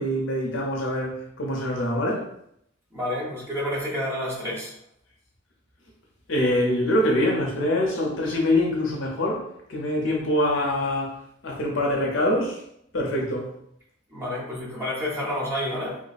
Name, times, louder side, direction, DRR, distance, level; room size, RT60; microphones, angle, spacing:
voice 1, 0.0-2.2 6.3-9.4 9.7-11.1 11.4-12.6 12.9-13.5, left 1 dB, 65° left, -1 dB, 0.8 m, -24 dB
voice 2, 2.9-4.7 14.1-16.0, left 1 dB, 10° right, -6 dB, 1.1 m, -29 dB
3.1 x 2.2 x 4.1 m, 0.74 s
head